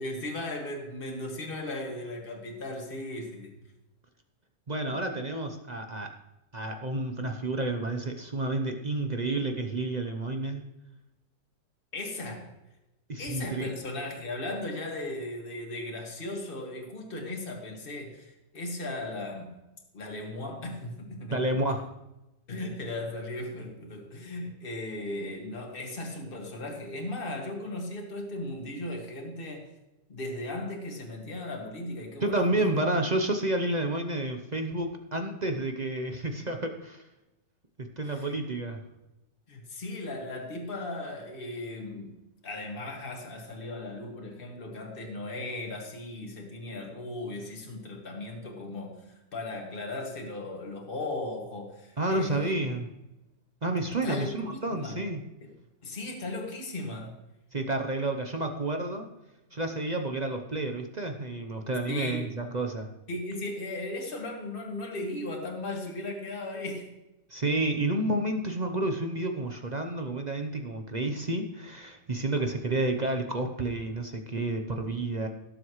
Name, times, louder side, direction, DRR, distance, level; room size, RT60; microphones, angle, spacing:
voice 1, 0.0-3.5 11.9-12.5 13.2-19.5 19.9-21.5 22.5-29.7 30.1-32.8 38.0-38.3 39.5-42.1 42.4-52.6 54.0-55.0 55.4-55.5 55.8-57.1 61.9-62.3 63.1-66.9, left 2 dB, 30° left, 0 dB, 2.1 m, -37 dB
voice 2, 4.7-6.1 6.5-10.6 13.1-13.7 21.3-21.8 32.2-37.0 38.0-38.8 52.0-52.9 53.6-55.2 57.5-59.1 59.5-62.9 67.3-75.3, right 2 dB, 45° right, 4 dB, 0.6 m, -30 dB
17.5 x 7.6 x 3.1 m, 0.95 s
omnidirectional pair, 1.9 m